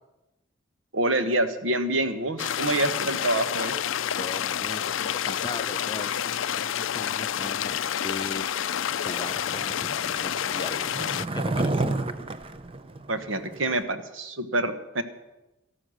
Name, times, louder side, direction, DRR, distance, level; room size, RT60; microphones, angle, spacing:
voice 1, 0.9-3.7 13.1-15.0, right 2 dB, 75° right, 9 dB, 1.3 m, -26 dB
sound 1, 1.9-7.8, right 1 dB, 55° right, 5.6 m, -52 dB
sound 2, 2.4-11.3, left 9 dB, 75° left, 0.4 m, -29 dB
voice 2, 4.2-8.5 8.9-11.8, left 2 dB, 20° left, 10 dB, 0.6 m, -39 dB
Skateboard, 8.4-13.8, right 2 dB, 25° right, 0.7 m, -32 dB
13.5 x 12.5 x 6.5 m, 0.99 s
head